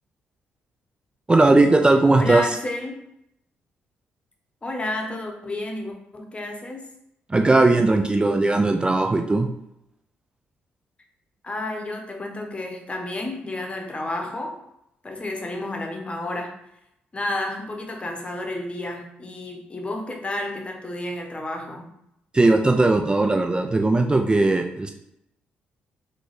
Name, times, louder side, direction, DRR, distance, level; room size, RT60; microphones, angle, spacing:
voice 1, 1.3-2.6 7.3-9.5 22.3-24.9, right 2 dB, 20° right, 3 dB, 0.4 m, -18 dB
voice 2, 2.2-3.0 4.6-6.9 11.4-14.6 15.0-16.5 17.1-21.9, left 2 dB, 30° left, 2 dB, 0.9 m, -31 dB
3.9 x 2.3 x 3.2 m, 0.79 s
hypercardioid pair, 50°, 4 cm